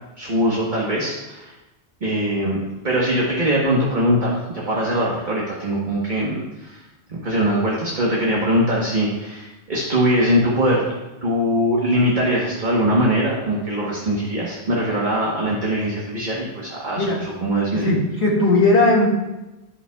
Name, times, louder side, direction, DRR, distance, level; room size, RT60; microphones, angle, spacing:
voice 1, 0.2-1.5 2.0-2.6 2.8-6.8 7.1-10.8 11.2-17.9, equal, 40° right, -4 dB, 1.3 m, -21 dB
voice 2, 17.7-19.1, left 2 dB, 60° left, -3 dB, 2.1 m, -17 dB
15.0 x 5.4 x 2.3 m, 1.0 s
omnidirectional pair, 1.2 m